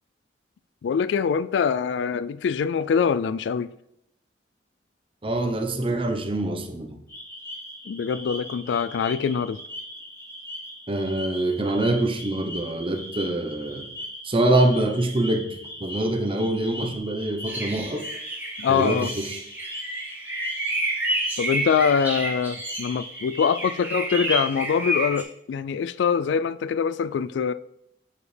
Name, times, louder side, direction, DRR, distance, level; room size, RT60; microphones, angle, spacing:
voice 1, 0.8-3.7 7.9-9.6 18.6-19.1 21.4-27.5, left 6 dB, 80° left, 0.3 m, -24 dB
voice 2, 5.2-7.0 10.9-13.9 14.2-18.0 18.7-19.4, right 1 dB, 30° right, 0.9 m, -25 dB
sound 1, 7.1-23.9, equal, 15° left, 2.7 m, -39 dB
sound 2, 17.5-25.2, right 1 dB, 10° right, 1.4 m, -30 dB
8.4 x 5.0 x 3.4 m
head